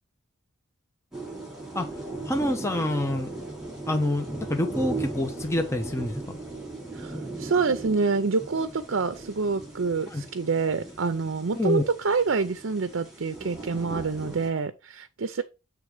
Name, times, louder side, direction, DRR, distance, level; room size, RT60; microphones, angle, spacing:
sound 1, 1.1-14.5, right 2 dB, ahead, 3.2 m, -38 dB
voice 1, 2.2-3.3 3.9-6.4 10.1-10.2 11.6-11.9, left 1 dB, 15° left, 0.7 m, -27 dB
voice 2, 6.9-15.4, right 4 dB, 70° right, 0.6 m, -27 dB
7.7 x 3.4 x 4.9 m
head